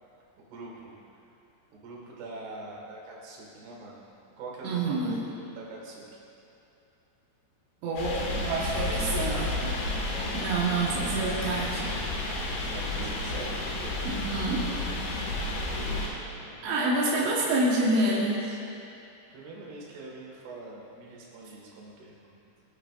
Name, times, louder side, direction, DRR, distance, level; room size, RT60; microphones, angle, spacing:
voice 1, 0.4-1.0 1.7-4.0 4.4-6.2 8.9-9.8 10.1-10.5 10.9-11.1 12.7-13.6 16.0-16.7 16.9-17.5 18.0-18.6 19.3-22.3, right 2 dB, 75° right, -4 dB, 3.9 m, -43 dB
voice 2, 4.6-5.2 7.8-9.5 10.3-11.8 14.0-14.7 16.6-18.4, right 2 dB, 90° right, -6 dB, 3.6 m, -27 dB
sound 1, 8.0-16.1, left 2 dB, 80° left, 4.0 m, -31 dB
22.0 x 9.2 x 2.5 m, 2.7 s
omnidirectional pair, 4.9 m